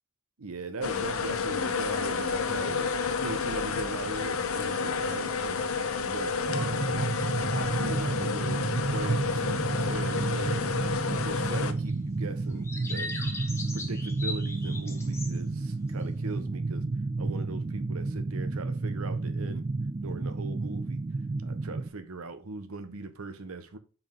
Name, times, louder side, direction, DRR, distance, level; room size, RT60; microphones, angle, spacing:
voice 1, 0.4-3.0 3.2-5.6 6.0-6.8 7.4-13.2 13.7-16.9 17.2-19.7 20.0-21.0 21.4-23.8, right 3 dB, 80° right, 0.8 m, -39 dB
sound 1, 0.8-11.7, left 5 dB, 75° left, 0.7 m, -30 dB
sound 2, 6.5-21.9, right 3 dB, 25° right, 0.3 m, -31 dB
sound 3, 11.8-12.2 12.6-15.5 15.8-16.1, left 3 dB, 10° left, 1.0 m, -39 dB
5.3 x 4.9 x 3.7 m
head